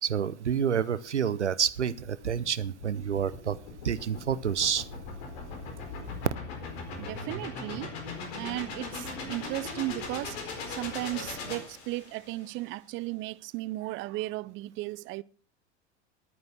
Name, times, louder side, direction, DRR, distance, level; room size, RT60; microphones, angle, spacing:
voice 1, 0.0-3.6 3.8-4.8, right 8 dB, 90° right, 0.7 m, -28 dB
sound 1, 2.0-12.4, left 3 dB, 65° left, 4.4 m, -39 dB
voice 2, 7.0-7.9 8.3-10.4 10.7-15.2, right 19 dB, 35° right, 0.5 m, -35 dB
11.5 x 9.4 x 6.0 m
figure-of-eight pair, 80°, 34 cm